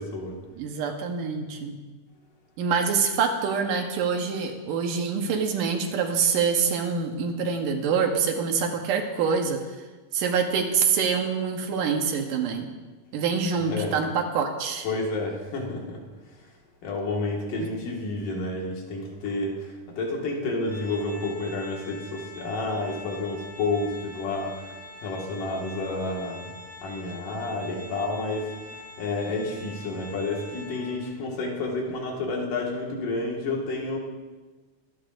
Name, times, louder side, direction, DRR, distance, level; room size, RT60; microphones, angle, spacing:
voice 1, 0.0-0.4 13.7-13.9 14.8-16.0 16.8-24.8 25.0-26.5 26.8-28.5 29.0-34.0, left 2 dB, 75° left, -1 dB, 3.5 m, -30 dB
voice 2, 0.6-1.8 2.6-9.6 10.1-12.7 13.1-14.9 17.6-17.7, right 6 dB, 75° right, 3 dB, 2.7 m, -25 dB
Organ, 20.6-31.3, left 2 dB, 45° left, 0.7 m, -44 dB
25.0 x 9.7 x 2.6 m, 1.3 s
omnidirectional pair, 3.8 m